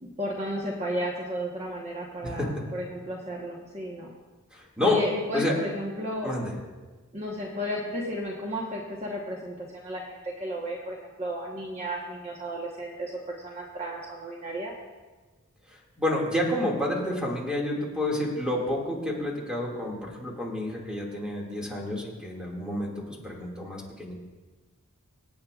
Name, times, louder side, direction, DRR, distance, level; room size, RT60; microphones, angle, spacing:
voice 1, 0.0-4.1 4.8-6.3 7.1-14.7, equal, 30° right, -2 dB, 1.1 m, -33 dB
voice 2, 2.2-2.6 4.5-5.0 5.3-5.6 6.2-6.5 16.0-24.1, left 1 dB, 5° right, -2 dB, 2.1 m, -29 dB
24.5 x 8.5 x 2.4 m, 1.3 s
head